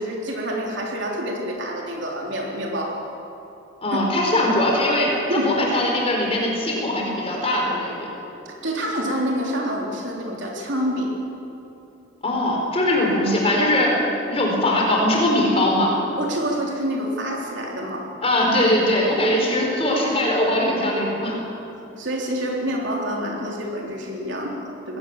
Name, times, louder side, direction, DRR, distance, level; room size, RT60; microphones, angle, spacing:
voice 1, 0.0-3.0 3.9-4.0 5.3-5.5 8.5-11.1 16.2-18.1 22.0-25.0, equal, 65° right, -1 dB, 3.6 m, -27 dB
voice 2, 3.8-8.1 12.2-15.9 18.2-21.4, left 1 dB, 30° left, -1 dB, 4.5 m, -21 dB
21.0 x 17.5 x 7.4 m, 2.9 s
head